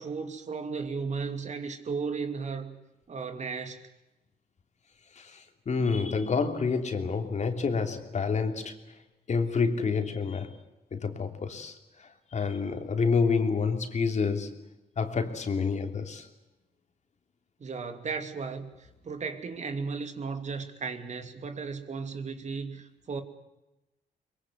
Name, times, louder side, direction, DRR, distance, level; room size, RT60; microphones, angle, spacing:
voice 1, 0.0-2.8 3.1-3.9 17.6-23.2, right 5 dB, 45° right, 2.7 m, -35 dB
voice 2, 5.2-8.8 9.3-10.6 10.9-14.6 15.0-16.3, left 5 dB, 45° left, 3.1 m, -28 dB
23.0 x 22.5 x 8.2 m
cardioid pair, 90°, 16 cm